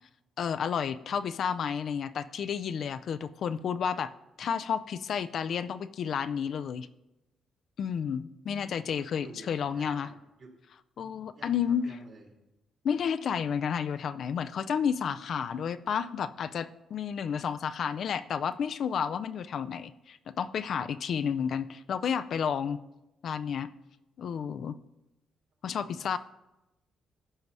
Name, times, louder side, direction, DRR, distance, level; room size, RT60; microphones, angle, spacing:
voice 1, 0.4-4.1 4.4-6.9 7.8-10.1 11.0-11.9 12.8-22.8 23.2-23.7 24.2-24.8 25.6-26.2, left 7 dB, 60° left, 12 dB, 0.4 m, -31 dB
voice 2, 8.7-10.1 10.4-10.5 11.3-12.2 25.7-26.0, right 3 dB, 55° right, 1 dB, 2.4 m, -51 dB
13.5 x 4.7 x 5.4 m, 0.96 s
cardioid pair, 90°, 0 cm